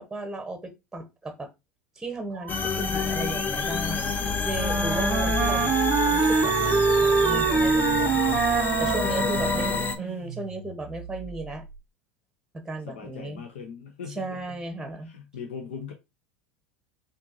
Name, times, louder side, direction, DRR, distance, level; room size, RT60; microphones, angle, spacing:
voice 1, 0.0-1.5 2.0-5.7 6.1-8.4 8.8-11.6 12.5-13.4 14.1-15.1, right 2 dB, 10° right, 0.9 m, -35 dB
sound 1, 2.3-5.0 5.8-11.8, right 8 dB, 80° right, 0.6 m, -43 dB
sound 2, 2.5-10.0, left 5 dB, 30° left, 0.6 m, -28 dB
voice 2, 4.0-4.5 8.7-9.9 12.9-14.4 15.0-15.9, left 6 dB, 75° left, 0.7 m, -40 dB
Wind instrument woodwind instrument, 4.5-10.1, right 6 dB, 35° right, 0.5 m, -24 dB
4.4 x 2.6 x 2.8 m
hypercardioid pair, 85°, 6 cm